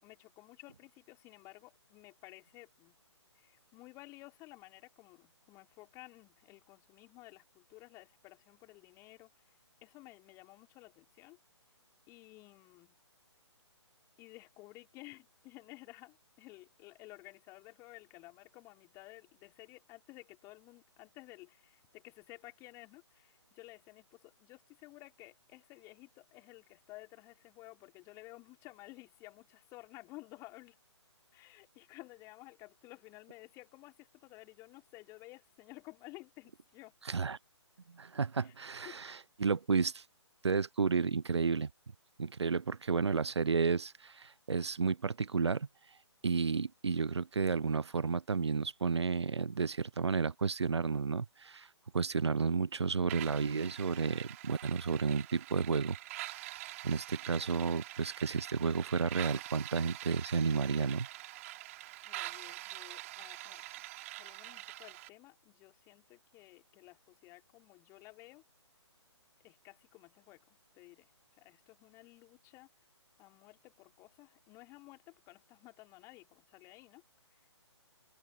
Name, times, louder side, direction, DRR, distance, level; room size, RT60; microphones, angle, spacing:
voice 1, 0.0-2.9 3.3-11.4 12.1-13.0 14.2-30.8 31.3-36.9 38.4-38.5 38.8-39.0 62.0-63.8 64.2-68.4 69.4-71.1 71.4-72.7 73.2-77.0 77.3-77.5, left 21 dB, 20° left, 3.2 m, -54 dB
voice 2, 37.1-37.4 37.9-40.0 40.4-41.7 42.2-45.7 46.2-51.7 51.9-56.0 56.2-56.4 56.8-61.1, right 5 dB, 65° right, 0.9 m, -32 dB
sound 1, 53.1-65.1, right 16 dB, 30° right, 3.1 m, -45 dB
open air
figure-of-eight pair, 135°, 15 cm